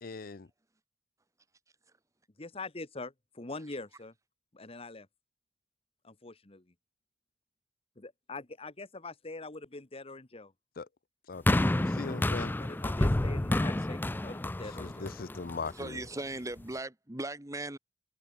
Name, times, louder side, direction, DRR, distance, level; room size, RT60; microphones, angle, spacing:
voice 1, 0.0-0.5 10.8-10.9 11.3-12.5 14.8-16.0, left 4 dB, 50° left, 0.6 m, -40 dB
voice 2, 2.4-4.1 4.5-5.1 6.0-6.6 8.0-10.5 12.6-15.1, left 3 dB, 30° left, 1.3 m, -43 dB
sound 1, 11.5-15.8 16.6-16.7, left 1 dB, 10° left, 0.4 m, -29 dB
voice 3, 15.7-17.8, right 2 dB, 15° right, 1.2 m, -38 dB
head